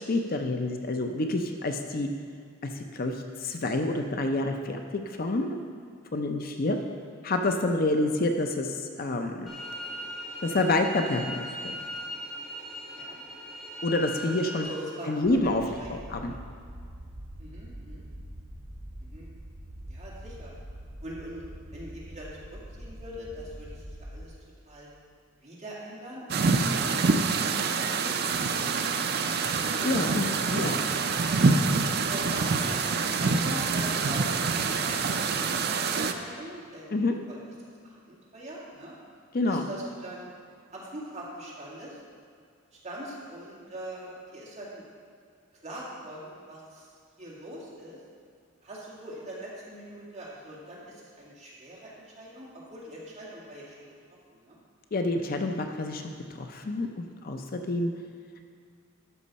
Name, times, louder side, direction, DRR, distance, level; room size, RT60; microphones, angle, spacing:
voice 1, 0.0-2.1 2.6-5.6 6.1-6.8 7.2-9.5 10.4-11.4 11.6-11.8 13.8-14.7 15.1-15.6 15.9-16.3 29.8-30.7 36.9-37.1 39.3-39.7 54.9-56.0 56.3-57.9, left 2 dB, 45° left, 4 dB, 0.5 m, -28 dB
sound 1, 9.5-14.6, equal, ahead, 1.8 m, -39 dB
voice 2, 14.5-15.5 15.8-15.9 17.4-18.0 19.0-19.3 19.9-20.5 21.0-21.4 21.7-24.4 24.6-24.9 25.4-29.1 29.9-30.0 30.5-30.8 32.1-32.8 33.2-35.0 35.2-37.4 37.8-38.9 39.5-40.3 40.7-42.0 42.7-44.8 45.6-46.9 47.2-48.0 48.6-54.6, right 1 dB, 35° right, -6 dB, 2.1 m, -43 dB
sound 2, 15.2-24.3, equal, 85° right, 2.3 m, -44 dB
sound 3, 26.3-36.1, right 4 dB, 50° right, 0.5 m, -26 dB
12.5 x 5.5 x 4.1 m, 2.2 s
head